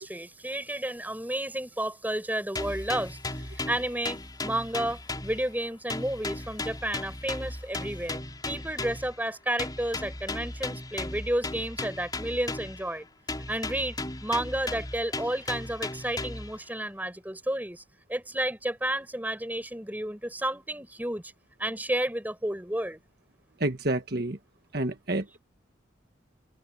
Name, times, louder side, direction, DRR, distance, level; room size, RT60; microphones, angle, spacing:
voice 1, 0.0-3.2 3.5-13.1 13.5-17.8 18.1-21.3 21.6-23.0, right 1 dB, 10° right, 6.7 m, -31 dB
sound 1, 2.5-5.6 5.9-9.2 9.6-12.9 13.3-16.6, left 2 dB, 20° left, 4.9 m, -36 dB
voice 2, 23.6-24.4 24.7-25.4, right 1 dB, 55° right, 1.5 m, -29 dB
head